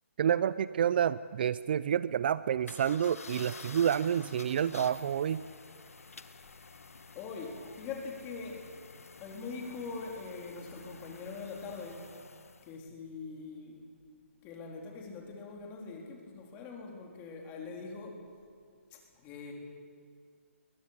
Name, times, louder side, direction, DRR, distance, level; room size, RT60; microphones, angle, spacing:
voice 1, 0.2-5.4, right 9 dB, 45° right, 17 dB, 0.5 m, -29 dB
sound 1, 2.7-12.8, left 4 dB, 90° left, 1.3 m, -50 dB
voice 2, 7.2-8.7 9.2-12.1 12.6-13.8 14.4-18.3 18.9-19.5, left 4 dB, 20° left, 1 dB, 3.8 m, -43 dB
22.0 x 20.0 x 8.3 m, 2.2 s
hypercardioid pair, 155°, 8 cm